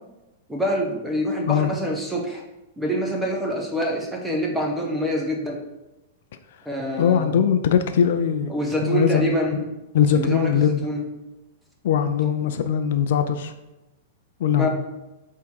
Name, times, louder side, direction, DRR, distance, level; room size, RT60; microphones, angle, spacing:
voice 1, 0.5-2.4 2.8-5.6 6.7-7.4 8.5-9.6 10.1-11.0 12.4-12.5 14.6-14.7, equal, 5° right, 0 dB, 0.8 m, -26 dB
voice 2, 7.0-8.5 8.8-9.2 9.9-10.8 11.8-13.5 14.4-14.7, left 8 dB, 55° left, 9 dB, 0.5 m, -20 dB
8.2 x 3.7 x 4.7 m, 1.0 s
supercardioid pair, 175°, 0 cm